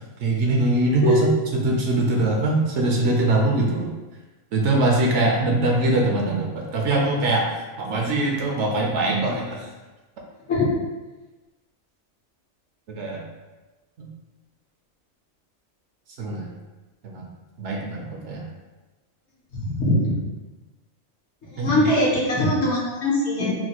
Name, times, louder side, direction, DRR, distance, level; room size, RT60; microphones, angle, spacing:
voice 1, 0.2-3.9 4.5-9.7 12.9-13.3 14.0-14.1 16.2-16.5 17.0-17.3 17.6-18.5 21.6-21.8, right 2 dB, 70° right, -1 dB, 0.8 m, -22 dB
voice 2, 1.0-1.3 10.5-10.8 19.5-20.2 21.4-23.5, left 1 dB, 60° left, -6 dB, 1.1 m, -21 dB
4.0 x 2.2 x 2.9 m, 1.2 s
omnidirectional pair, 1.4 m